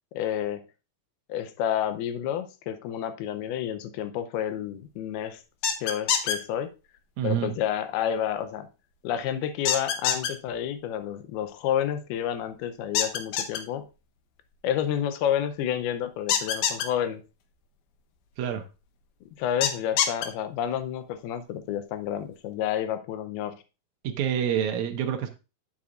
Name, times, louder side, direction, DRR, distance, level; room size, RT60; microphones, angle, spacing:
voice 1, 0.1-0.6 1.3-5.4 5.8-6.7 7.2-8.7 9.0-13.9 14.6-17.2 19.4-23.6, left 10 dB, 85° left, 10 dB, 2.7 m, -30 dB
sound 1, 5.6-6.4 9.7-10.3 13.0-13.6 16.3-16.9 19.6-20.3, left 8 dB, 70° left, 2.0 m, -24 dB
voice 2, 7.2-7.5 18.4-18.6 24.0-25.3, right 9 dB, 85° right, 5 dB, 1.6 m, -27 dB
9.4 x 7.2 x 2.5 m, 0.30 s
omnidirectional pair, 4.3 m